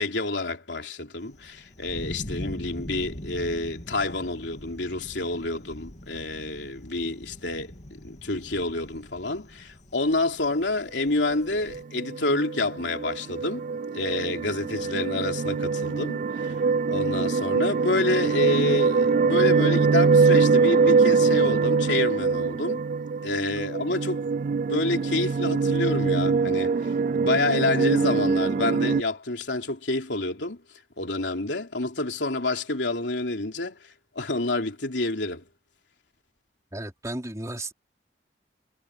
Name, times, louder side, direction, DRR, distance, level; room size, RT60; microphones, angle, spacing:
voice 1, 0.0-7.7 8.0-16.6 16.9-22.8 23.2-24.2 24.7-30.6 31.0-35.5, left 2 dB, 85° left, 3.3 m, -28 dB
Thunder, 1.2-11.8, left 1 dB, 40° left, 2.6 m, -42 dB
sound 1, 11.7-29.0, right 4 dB, 45° right, 0.3 m, -23 dB
voice 2, 36.7-37.7, right 1 dB, 20° right, 3.6 m, -34 dB
head